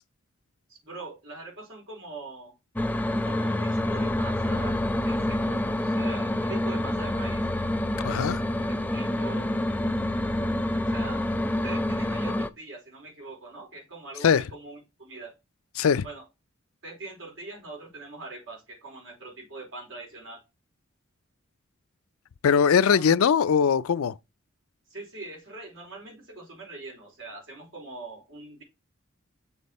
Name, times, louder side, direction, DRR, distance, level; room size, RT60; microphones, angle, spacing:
voice 1, 0.7-2.5 3.2-4.8 5.0-7.5 8.6-8.7 8.9-9.5 10.9-11.2 11.6-15.3 16.0-16.2 16.8-20.4 22.9-23.0 24.9-28.6, right 2 dB, 65° right, 4.2 m, -42 dB
sound 1, 2.8-12.5, left 1 dB, 10° left, 0.3 m, -27 dB
voice 2, 8.0-8.4 14.2-14.4 15.8-16.0 22.4-24.2, left 7 dB, 80° left, 0.4 m, -21 dB
7.2 x 4.2 x 4.2 m
head